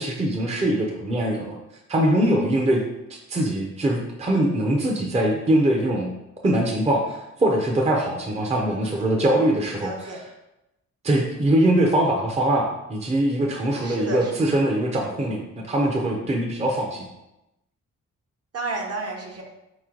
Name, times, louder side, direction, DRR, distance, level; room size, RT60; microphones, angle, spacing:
voice 1, 0.0-1.6 1.9-2.8 3.1-6.1 6.4-9.9 11.0-17.0, right 1 dB, 20° right, 0 dB, 0.6 m, -22 dB
voice 2, 8.3-9.4 9.8-10.2 13.8-14.4 14.7-14.9 18.5-19.4, right 3 dB, 50° right, 0 dB, 1.0 m, -33 dB
4.2 x 3.1 x 3.8 m, 0.93 s
cardioid pair, 90°, 31 cm